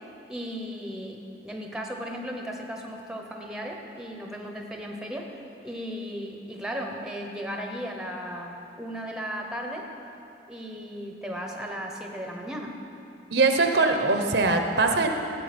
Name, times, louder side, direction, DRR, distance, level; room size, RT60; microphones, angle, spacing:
voice 1, 0.3-5.3 5.6-9.9 10.5-12.7, equal, 5° right, 1 dB, 0.8 m, -36 dB
voice 2, 13.3-15.1, right 3 dB, 65° right, 5 dB, 0.8 m, -22 dB
14.5 x 7.6 x 5.1 m, 2.8 s
head